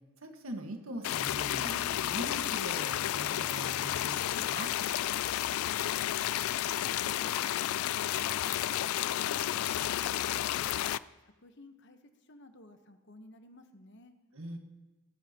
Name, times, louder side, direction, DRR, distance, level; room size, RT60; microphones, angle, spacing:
voice 1, 0.2-4.7 14.3-14.6, right 1 dB, 80° right, 4 dB, 1.6 m, -41 dB
sound 1, 1.0-11.0, left 12 dB, 85° left, 0.3 m, -31 dB
sound 2, 1.7-1.8 2.1-2.9 3.3-3.8 4.0-5.6 6.0-7.7 7.9-9.1, left 5 dB, 40° left, 5.0 m, -51 dB
voice 2, 5.6-6.0 6.5-8.6 9.0-10.8 11.2-14.1, left 2 dB, 55° left, 7 dB, 1.1 m, -55 dB
18.5 x 13.5 x 2.9 m, 1.1 s
head